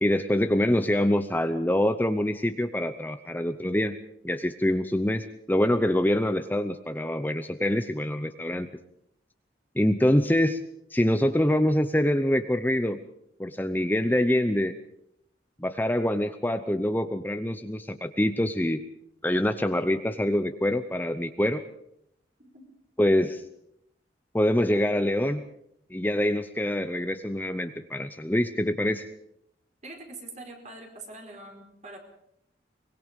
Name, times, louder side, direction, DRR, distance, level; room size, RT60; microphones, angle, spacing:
voice 1, 0.0-4.0 4.2-8.7 9.8-10.6 10.9-13.0 13.4-14.7 15.6-18.8 19.2-21.6 23.0-23.4 24.3-25.4 25.9-29.1, left 1 dB, 10° left, 9 dB, 0.7 m, -25 dB
voice 2, 29.8-32.0, right 2 dB, 40° right, 3 dB, 4.8 m, -43 dB
23.5 x 21.0 x 5.3 m, 0.75 s
head